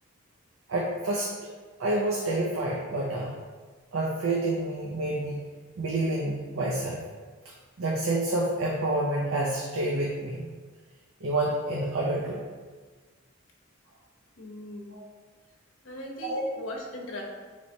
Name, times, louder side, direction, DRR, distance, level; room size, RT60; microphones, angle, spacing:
voice 1, 0.7-1.3 1.8-3.3 3.9-5.4 5.8-7.0 7.4-10.5 11.2-12.4 14.9-15.1 16.2-16.4, right 2 dB, 85° right, -3 dB, 0.5 m, -28 dB
voice 2, 14.4-14.9 15.8-17.2, left 1 dB, 75° left, 0 dB, 0.7 m, -39 dB
4.2 x 3.2 x 2.7 m, 1.4 s
head